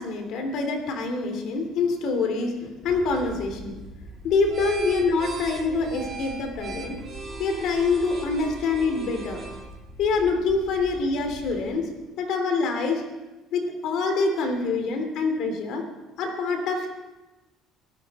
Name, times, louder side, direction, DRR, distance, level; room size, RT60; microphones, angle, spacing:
voice 1, 0.0-3.8 4.2-7.0 7.4-9.4 10.0-11.8 12.2-13.0 13.5-15.8 16.2-16.9, left 4 dB, 55° left, 5 dB, 3.0 m, -25 dB
sound 1, 2.8-11.6, right 3 dB, 30° right, 3.5 m, -39 dB
23.5 x 13.5 x 4.3 m, 1.1 s
cardioid pair, 170°, 0 cm